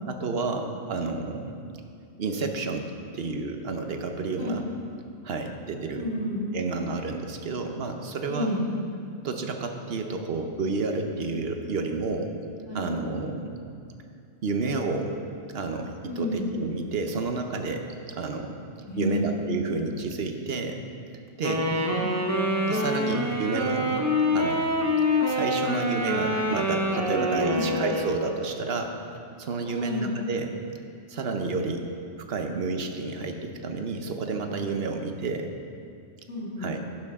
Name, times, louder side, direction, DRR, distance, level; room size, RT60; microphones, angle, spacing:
voice 1, 0.1-1.6 2.2-2.9 3.1-4.6 5.2-6.1 6.5-8.5 9.2-12.3 12.7-13.6 14.4-15.2 15.5-18.6 19.0-20.8 21.4-21.7 22.7-24.0 24.3-24.7 25.3-29.0 29.4-30.5 31.1-31.8 32.2-35.5 36.6-36.8, right 3 dB, 55° right, 5 dB, 1.1 m, -30 dB
voice 2, 6.0-6.4 8.3-8.6 12.7-12.9 16.1-16.5 18.9-19.4 21.5-22.1 27.1-27.7 29.6-30.1 36.3-37.0, left 1 dB, 80° left, -7 dB, 2.6 m, -31 dB
Wind instrument woodwind instrument, 21.4-28.4, left 1 dB, 15° right, 0.8 m, -26 dB
11.0 x 11.0 x 3.6 m, 2.4 s
omnidirectional pair, 1.2 m